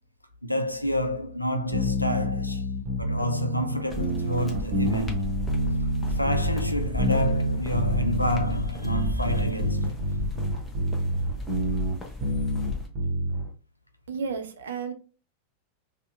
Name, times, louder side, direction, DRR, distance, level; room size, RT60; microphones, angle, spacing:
voice 1, 0.4-2.7 3.0-5.4 6.1-10.0, equal, 90° left, 0.3 m, -29 dB
sound 1, 1.7-13.5, equal, 35° right, 0.8 m, -28 dB
sound 2, 3.9-12.9, left 2 dB, 10° left, 0.7 m, -35 dB
voice 2, 14.1-14.9, right 5 dB, 65° right, 0.5 m, -32 dB
2.7 x 2.0 x 2.4 m
figure-of-eight pair, 90°, 0 cm